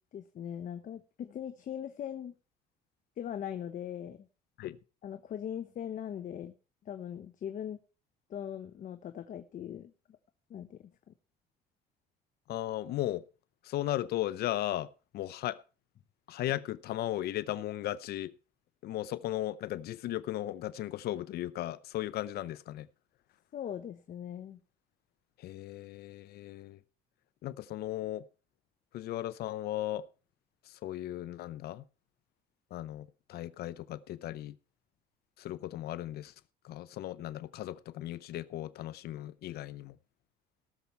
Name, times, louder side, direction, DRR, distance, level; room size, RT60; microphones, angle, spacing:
voice 1, 0.1-2.3 3.2-4.3 5.0-6.5 6.8-7.8 8.3-9.9 10.5-10.9 23.5-24.6, left 9 dB, 50° left, 1.0 m, -40 dB
voice 2, 12.5-13.2 13.6-14.9 15.1-15.6 16.3-18.3 18.8-22.9 25.4-26.8 27.4-28.2 28.9-30.0 30.7-31.8 32.7-34.6 35.4-36.3 36.6-40.0, left 14 dB, 70° left, 0.6 m, -36 dB
17.5 x 7.0 x 4.5 m
cardioid pair, 110°, 17 cm